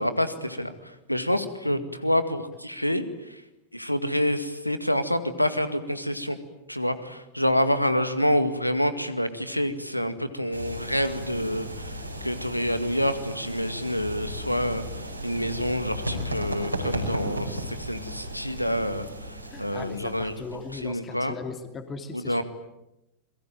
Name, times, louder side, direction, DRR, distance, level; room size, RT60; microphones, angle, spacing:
voice 1, 0.0-3.4 3.7-6.4 6.7-20.3 20.8-21.3 22.1-22.4, equal, 90° left, 11 dB, 2.1 m, -27 dB
sound 1, 10.5-20.9, equal, 90° right, 5.5 m, -35 dB
voice 2, 19.5-22.4, left 4 dB, 20° left, 7 dB, 2.7 m, -38 dB
29.0 x 22.5 x 9.0 m, 0.91 s
figure-of-eight pair, 90°, 0 cm